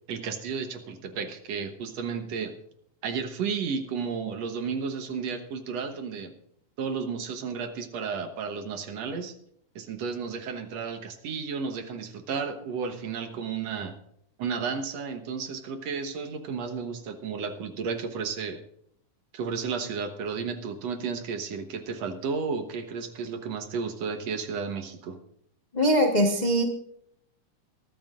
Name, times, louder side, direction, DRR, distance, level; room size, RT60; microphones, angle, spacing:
voice 1, 0.1-2.6 3.0-6.3 6.8-9.3 9.8-14.0 14.4-18.6 19.3-25.2, right 5 dB, 70° right, 7 dB, 2.2 m, -33 dB
voice 2, 25.7-26.6, equal, 35° left, 1 dB, 0.6 m, -22 dB
22.0 x 13.0 x 2.5 m, 0.68 s
omnidirectional pair, 3.3 m